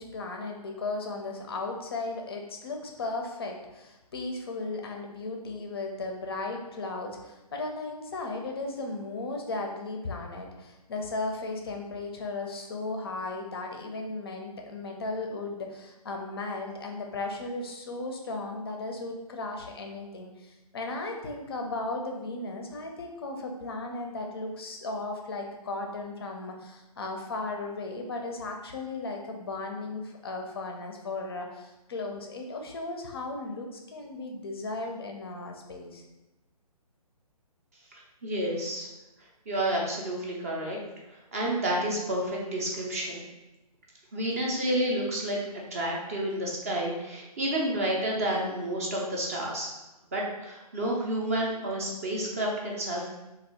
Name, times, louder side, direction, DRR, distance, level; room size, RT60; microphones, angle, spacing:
voice 1, 0.0-36.0, left 2 dB, 40° left, 2 dB, 0.4 m, -36 dB
voice 2, 38.2-38.9 39.5-40.8 41.3-43.2 44.1-45.4 45.7-49.7 50.1-53.1, right 1 dB, 25° right, -2 dB, 0.4 m, -30 dB
3.4 x 2.3 x 3.3 m, 1.0 s
figure-of-eight pair, 135°, 20 cm